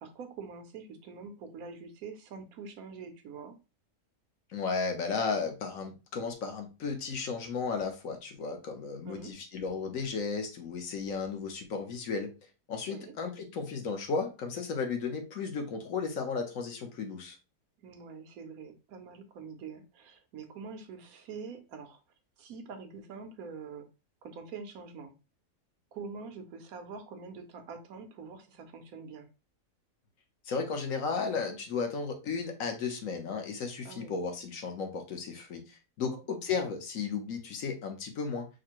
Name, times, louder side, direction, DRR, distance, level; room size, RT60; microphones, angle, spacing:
voice 1, 0.0-3.6 9.0-9.3 12.9-13.1 17.8-22.0 22.4-23.9 24.2-25.1 25.9-29.3 33.8-34.1 36.1-36.3, right 5 dB, 65° right, 7 dB, 1.1 m, -45 dB
voice 2, 4.5-12.3 12.7-17.4 30.4-38.5, left 5 dB, 60° left, 5 dB, 1.2 m, -34 dB
5.0 x 2.2 x 4.5 m, 0.29 s
omnidirectional pair, 1.8 m